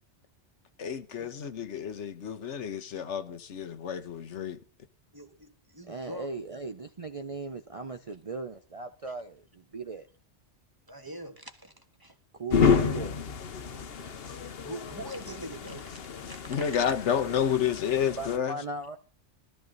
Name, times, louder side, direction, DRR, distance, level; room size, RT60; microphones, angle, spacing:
voice 1, 0.8-4.6 16.5-18.5, left 8 dB, 80° left, 1.3 m, -30 dB
voice 2, 5.1-6.3 10.9-11.7 12.0-12.1 13.7-14.2 14.6-16.7, right 1 dB, 20° right, 1.6 m, -43 dB
voice 3, 5.9-10.1 12.3-13.2 13.9-14.0 18.2-19.0, right 3 dB, 35° right, 0.6 m, -38 dB
sound 1, 12.5-18.4, left 6 dB, 60° left, 1.1 m, -30 dB
17.0 x 13.0 x 3.9 m
omnidirectional pair, 1.2 m